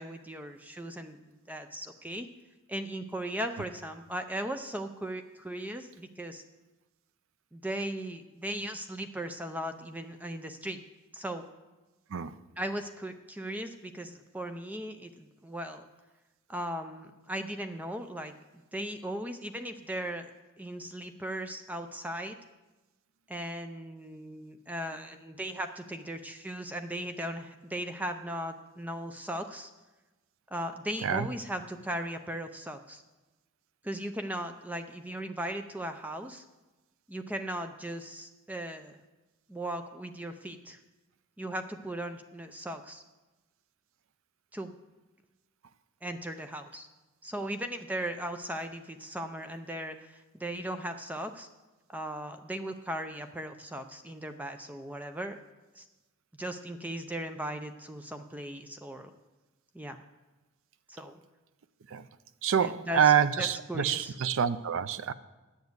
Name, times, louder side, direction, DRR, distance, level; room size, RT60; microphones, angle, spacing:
voice 1, 0.0-2.3 2.7-6.4 7.5-10.8 11.1-11.4 12.6-15.9 16.5-20.3 20.6-22.4 23.3-29.7 30.5-33.0 33.8-36.4 37.1-39.0 39.5-40.8 41.4-43.0 44.5-44.7 46.0-46.9 47.2-51.5 51.9-55.4 55.7-55.9 56.4-59.1 59.7-60.0 60.9-61.2 62.6-64.2, right 1 dB, 5° right, 7 dB, 0.5 m, -37 dB
voice 2, 62.4-65.1, right 8 dB, 65° right, 15 dB, 0.5 m, -26 dB
10.5 x 7.2 x 8.0 m, 1.1 s
head